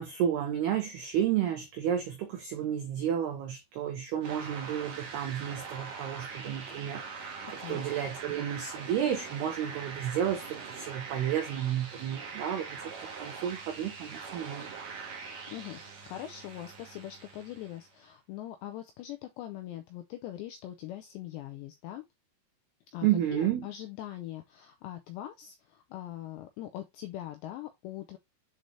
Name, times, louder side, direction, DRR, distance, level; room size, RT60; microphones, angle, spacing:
voice 1, 0.0-7.4 7.7-12.8 13.2-14.7 23.0-23.7, right 10 dB, 90° right, 2.2 m, -31 dB
sound 1, 4.2-17.9, right 5 dB, 60° right, 2.4 m, -43 dB
voice 2, 7.6-7.9 15.5-22.1 22.9-28.2, left 13 dB, 85° left, 2.5 m, -42 dB
7.8 x 4.0 x 3.2 m
omnidirectional pair, 5.7 m